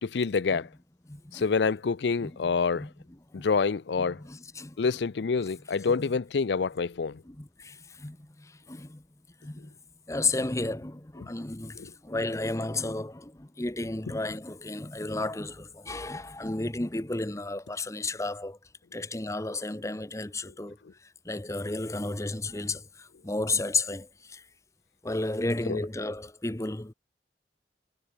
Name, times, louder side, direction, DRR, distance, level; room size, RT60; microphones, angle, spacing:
voice 1, 0.0-0.7 1.3-2.9 3.3-4.2 4.8-7.2 11.8-11.9 25.7-25.8, left 5 dB, 80° left, 0.5 m, -27 dB
voice 2, 1.1-1.4 2.2-2.9 3.3-3.5 4.0-4.8 5.8-6.1 7.2-9.0 9.4-9.7 10.1-18.6 18.9-20.8 21.2-24.4 25.0-26.9, left 2 dB, 15° left, 0.9 m, -33 dB
head